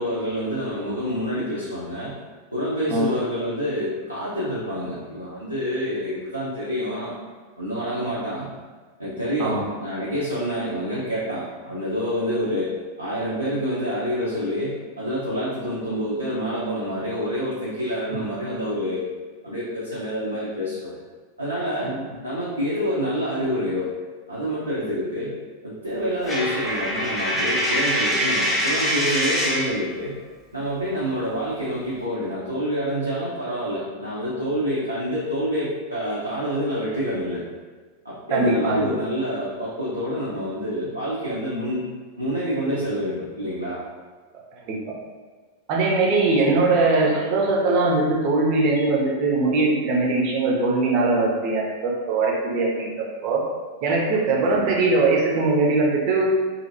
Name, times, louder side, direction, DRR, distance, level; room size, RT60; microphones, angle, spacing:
voice 1, 0.0-2.2 2.5-7.1 7.6-8.5 9.0-12.7 13.0-19.1 19.4-21.0 21.4-21.9 22.2-23.9 24.3-25.4 25.6-30.2 30.5-37.4 38.0-41.8 42.2-43.8 46.3-46.7 54.5-54.7, equal, 90° right, -9 dB, 0.6 m, -27 dB
Coin (dropping), 26.3-29.8, equal, 5° left, 0.6 m, -24 dB
voice 2, 38.3-38.9 44.7-44.8 45.7-53.4 53.8-56.3, right 3 dB, 40° right, -3 dB, 0.6 m, -21 dB
2.8 x 2.7 x 2.6 m, 1.4 s
figure-of-eight pair, 90°, 0 cm